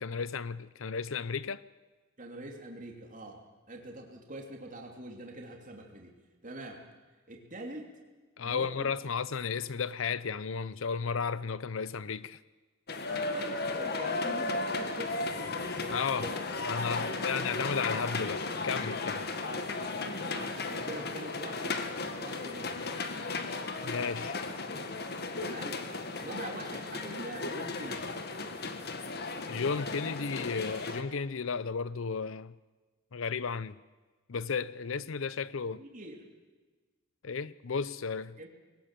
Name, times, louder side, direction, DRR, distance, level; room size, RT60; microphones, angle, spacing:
voice 1, 0.0-1.6 8.4-12.4 15.9-16.3 16.7-19.2 23.8-24.4 29.5-32.5 33.1-33.8 34.3-35.8 37.2-38.4, left 5 dB, 70° left, 0.6 m, -34 dB
voice 2, 2.2-3.4 3.7-6.1 6.4-6.9 7.3-7.9 8.4-9.1 13.1-16.4 17.0-17.2 19.4-19.7 20.2-21.8 22.1-22.8 25.4-25.8 26.2-28.1 35.7-36.2 38.4-38.5, right 1 dB, 40° right, 3.1 m, -44 dB
sound 1, 12.9-31.0, left 3 dB, 50° left, 1.8 m, -35 dB
21.0 x 19.0 x 7.6 m
head